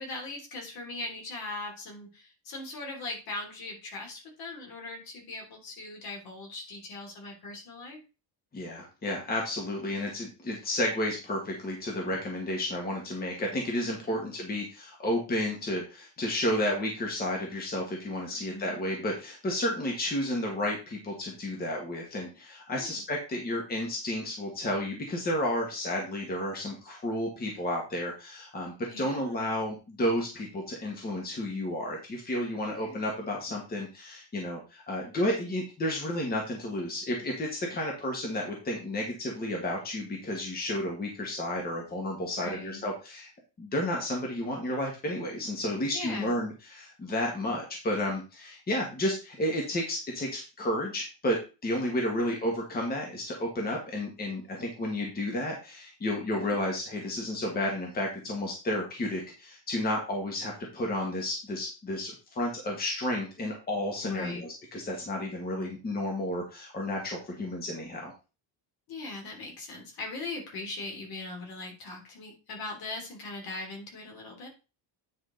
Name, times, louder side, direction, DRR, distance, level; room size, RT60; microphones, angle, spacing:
voice 1, 0.0-8.0 14.1-14.4 18.3-18.9 22.8-23.0 28.9-29.4 32.6-33.0 42.4-42.9 45.9-46.4 56.3-56.5 64.0-64.4 68.9-74.5, left 2 dB, 55° left, 1 dB, 3.4 m, -40 dB
voice 2, 8.5-43.3 43.6-68.1, left 1 dB, 20° left, 0 dB, 1.6 m, -32 dB
9.4 x 4.9 x 3.9 m, 0.31 s
cardioid pair, 175°, 44 cm